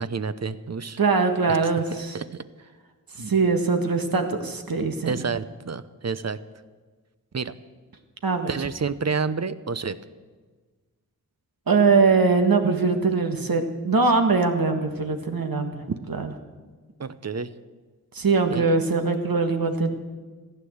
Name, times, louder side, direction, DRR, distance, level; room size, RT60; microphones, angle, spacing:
voice 1, 0.0-1.0 1.5-1.6 2.1-2.4 5.1-6.4 7.3-7.5 8.5-10.0 15.9-16.0 17.0-17.5 18.5-18.7, right 5 dB, 45° right, 14 dB, 0.7 m, -29 dB
voice 2, 1.0-2.1 3.2-5.1 8.2-8.5 11.7-15.8 16.2-16.3 18.1-19.9, right 4 dB, 70° right, 6 dB, 1.7 m, -22 dB
15.0 x 9.8 x 7.9 m, 1.4 s
wide cardioid pair, 55°, 36 cm